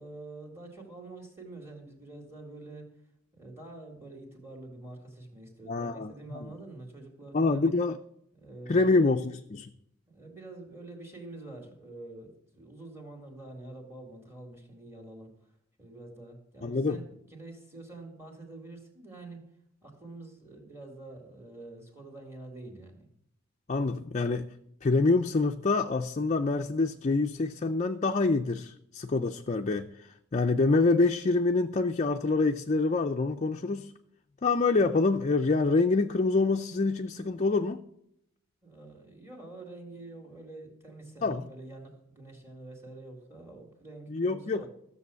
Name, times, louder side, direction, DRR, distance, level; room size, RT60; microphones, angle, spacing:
voice 1, 0.0-2.9 3.3-7.7 8.3-9.1 10.1-15.3 15.8-19.4 19.8-23.1 38.6-44.7, right 2 dB, 10° right, 1 dB, 2.2 m, -46 dB
voice 2, 5.7-6.4 7.3-8.0 8.7-9.7 16.6-17.0 23.7-24.5 24.8-33.9 34.4-37.8 41.2-41.5 44.1-44.6, left 3 dB, 35° left, 5 dB, 0.4 m, -26 dB
14.0 x 7.0 x 6.9 m, 0.77 s
head